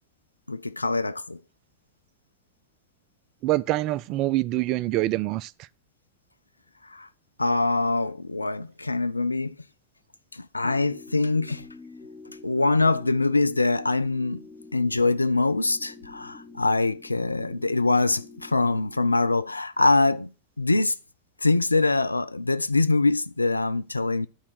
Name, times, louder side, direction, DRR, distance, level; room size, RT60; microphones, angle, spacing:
voice 1, 0.5-1.4 6.8-7.1 7.4-9.6 10.3-11.7 12.4-14.4 14.7-21.0 21.4-24.3, left 3 dB, 80° left, 0.4 m, -24 dB
voice 2, 3.4-5.5, right 16 dB, 40° right, 0.4 m, -25 dB
sound 1, 10.6-19.3, left 3 dB, 5° left, 1.3 m, -46 dB
10.0 x 4.4 x 6.2 m
figure-of-eight pair, 90°, 0 cm